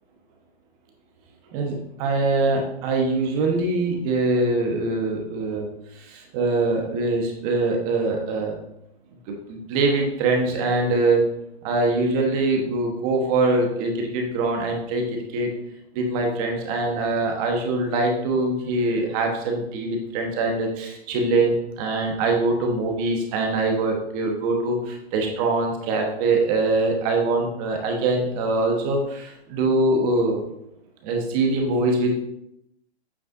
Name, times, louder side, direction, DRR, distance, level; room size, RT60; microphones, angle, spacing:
voice 1, 1.5-5.7 6.0-8.6 9.3-11.2 11.6-15.0 15.3-15.5 15.9-30.4 31.0-32.1, right 2 dB, 35° right, 2 dB, 1.2 m, -23 dB
8.4 x 5.2 x 2.6 m, 0.81 s
hypercardioid pair, 135°, 33 cm